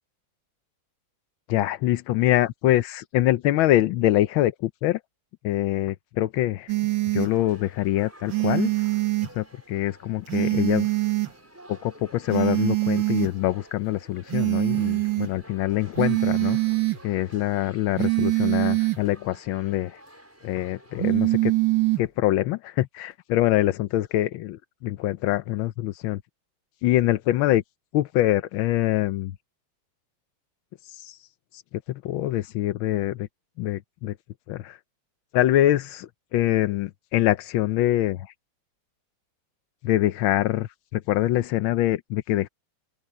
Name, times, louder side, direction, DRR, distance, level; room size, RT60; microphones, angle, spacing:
voice 1, 1.5-5.0 5.4-6.7 7.1-8.7 9.3-10.9 11.7-16.6 17.0-20.0 20.4-21.5 22.0-26.2 26.8-27.6 27.9-29.3 30.8-31.2 31.5-31.6 31.9-33.3 33.6-34.1 34.5-34.8 35.3-38.3 39.8-42.5, left 14 dB, 90° left, 1.5 m, -24 dB
sound 1, 6.7-7.3 8.3-9.3 10.3-11.3 12.3-13.3 14.3-15.3 16.0-17.0 18.0-19.0 21.0-22.0, right 21 dB, 70° right, 2.3 m, -23 dB
sound 2, 7.3-21.1, equal, 5° right, 5.8 m, -51 dB
open air
omnidirectional pair, 2.1 m